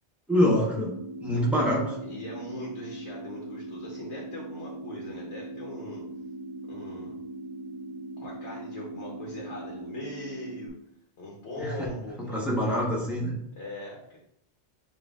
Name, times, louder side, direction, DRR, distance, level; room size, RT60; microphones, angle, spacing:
voice 1, 0.3-1.9 11.6-11.7 12.3-13.3, equal, ahead, -5 dB, 1.0 m, -25 dB
sound 1, 0.7-10.7, right 2 dB, 80° right, 0.9 m, -40 dB
voice 2, 1.3-1.7 2.0-6.0 6.7-7.1 8.2-10.8 11.2-12.9 13.5-14.2, left 1 dB, 85° left, -3 dB, 1.2 m, -41 dB
6.7 x 2.7 x 2.4 m, 0.78 s
omnidirectional pair, 1.1 m